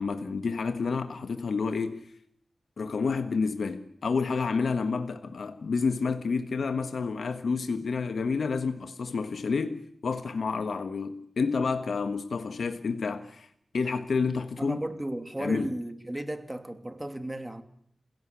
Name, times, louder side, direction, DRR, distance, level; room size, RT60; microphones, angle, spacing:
voice 1, 0.0-2.0 2.8-13.5 13.7-14.8 15.4-15.7, left 4 dB, 80° left, 1.5 m, -29 dB
voice 2, 14.6-17.6, right 1 dB, 15° right, 2.8 m, -34 dB
28.5 x 17.0 x 9.9 m
cardioid pair, 60°, 0 cm